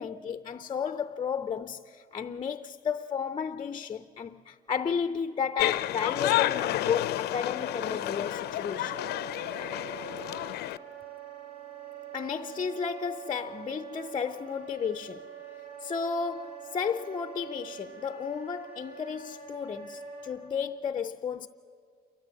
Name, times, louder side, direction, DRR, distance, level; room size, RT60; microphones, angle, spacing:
voice 1, 0.0-9.0 9.3-9.8 12.1-15.3 15.8-21.5, left 6 dB, 30° left, 0.5 m, -33 dB
sound 1, 5.6-10.8, left 14 dB, 75° left, 0.5 m, -30 dB
Wind instrument woodwind instrument, 7.5-20.4, right 8 dB, 80° right, 6.0 m, -45 dB
28.5 x 13.5 x 7.7 m
cardioid pair, 110°, 17 cm